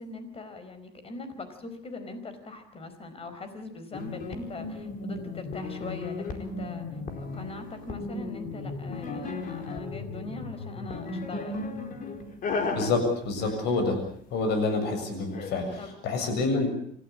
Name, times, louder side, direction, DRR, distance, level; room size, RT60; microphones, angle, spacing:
voice 1, 0.0-6.9 7.2-11.6 15.8-15.9, left 2 dB, 35° left, 10 dB, 4.8 m, -41 dB
sound 1, 3.9-14.4 15.3-15.8, left 3 dB, 55° left, 4.3 m, -35 dB
voice 2, 12.8-14.0 14.3-16.7, left 3 dB, 80° left, 6 dB, 7.4 m, -27 dB
27.0 x 15.0 x 8.7 m, 0.66 s
cardioid pair, 110°, 17 cm